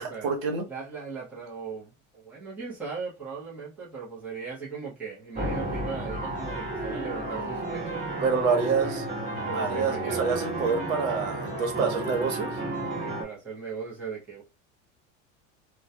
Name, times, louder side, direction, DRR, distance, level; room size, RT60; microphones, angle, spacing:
voice 1, 0.0-0.6 8.2-9.0 9.5-12.6, right 5 dB, 75° right, 1.0 m, -27 dB
voice 2, 0.7-8.0 8.7-8.9 9.4-10.6 13.0-14.4, right 5 dB, 5° right, 0.5 m, -38 dB
sound 1, 5.3-13.2, right 2 dB, 20° right, 1.0 m, -32 dB
2.2 x 2.1 x 2.6 m
supercardioid pair, 165°, 40 cm